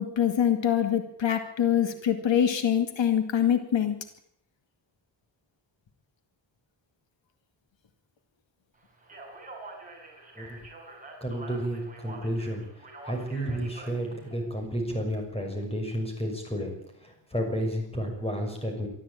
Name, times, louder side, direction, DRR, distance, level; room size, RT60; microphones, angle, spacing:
voice 1, 0.0-4.0, left 9 dB, 85° left, 7 dB, 2.3 m, -24 dB
Speech, 9.0-14.3, right 2 dB, 20° right, 6.3 m, -46 dB
voice 2, 11.2-12.6 13.0-18.9, equal, 15° left, 3 dB, 6.4 m, -31 dB
24.0 x 13.5 x 8.9 m, 0.71 s
wide cardioid pair, 155°, 44 cm